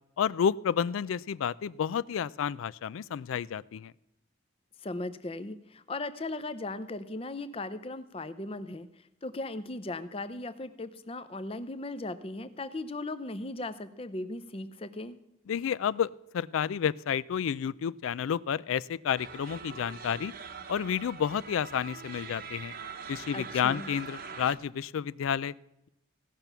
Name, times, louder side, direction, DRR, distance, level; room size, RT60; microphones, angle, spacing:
voice 1, 0.2-3.9 15.5-20.3 20.7-22.7 23.1-25.5, left 8 dB, 85° left, 20 dB, 0.3 m, -30 dB
voice 2, 4.8-8.9 9.2-15.2 23.3-23.9, left 2 dB, 30° left, 13 dB, 0.6 m, -37 dB
sound 1, 19.2-24.6, right 5 dB, 50° right, 0.9 m, -43 dB
16.5 x 6.0 x 6.7 m, 0.90 s
head